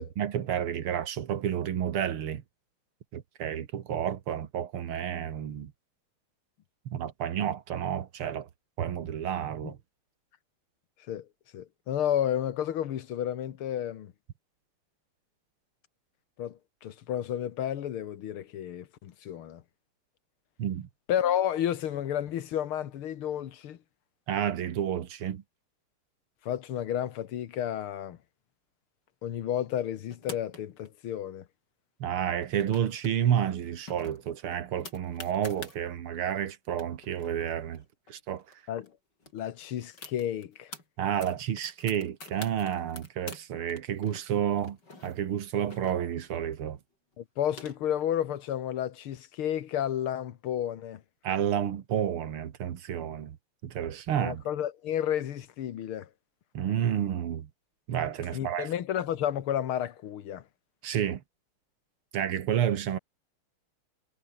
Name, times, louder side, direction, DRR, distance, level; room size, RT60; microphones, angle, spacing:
voice 1, 0.0-2.4 3.1-5.7 6.9-8.5 8.8-9.8 20.6-20.9 24.3-25.4 32.0-37.8 38.1-38.4 41.0-44.8 45.0-46.8 51.2-53.4 53.6-54.4 56.5-57.5 57.9-58.7 60.8-61.2 62.1-63.0, right 9 dB, 80° right, 2.3 m, -30 dB
voice 2, 11.5-14.1 16.4-19.6 21.1-23.8 26.4-28.2 29.2-31.4 38.7-38.9 39.3-40.7 47.2-51.0 54.2-56.1 58.3-60.4, left 10 dB, 80° left, 2.1 m, -31 dB
sound 1, 30.1-30.9 32.4-33.1 33.4-33.5 33.9-35.8 36.4-36.5 36.7-38.5 38.9-39.0 39.2-40.8 41.2-43.4 43.7-46.3 47.1-48.1, left 3 dB, 50° left, 6.2 m, -46 dB
omnidirectional pair, 2.4 m